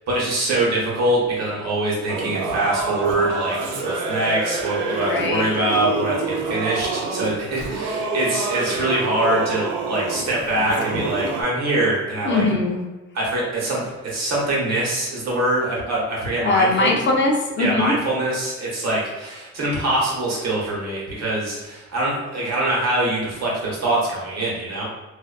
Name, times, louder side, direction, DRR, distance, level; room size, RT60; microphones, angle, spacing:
voice 1, 0.1-3.6 3.8-12.4 13.1-16.9 17.6-24.8, right 1 dB, 60° right, -5 dB, 1.1 m, -23 dB
Singing / Musical instrument, 2.1-11.4, right 3 dB, 75° right, 0.5 m, -27 dB
voice 2, 5.0-5.4 12.2-12.8 16.4-17.9, left 2 dB, 40° left, 0 dB, 0.4 m, -20 dB
2.5 x 2.4 x 2.2 m, 1.2 s
cardioid pair, 90°, 30 cm